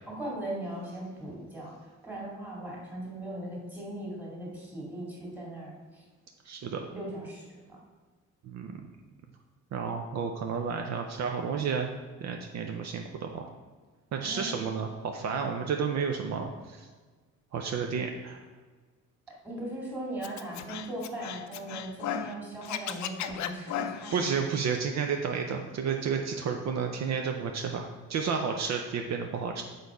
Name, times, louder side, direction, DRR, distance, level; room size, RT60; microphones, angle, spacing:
voice 1, 0.1-6.0 6.9-7.8 14.2-14.6 19.4-24.3, right 1 dB, 5° right, -4 dB, 2.0 m, -39 dB
voice 2, 6.4-6.8 8.4-8.7 9.7-11.9 12.2-13.5 14.1-16.9 17.5-18.4 24.1-29.6, right 6 dB, 60° right, 4 dB, 0.5 m, -31 dB
Scratching (performance technique), 20.2-22.3 22.6-24.2, left 10 dB, 65° left, 0.5 m, -35 dB
6.4 x 4.0 x 4.8 m, 1.4 s
cardioid pair, 140°, 31 cm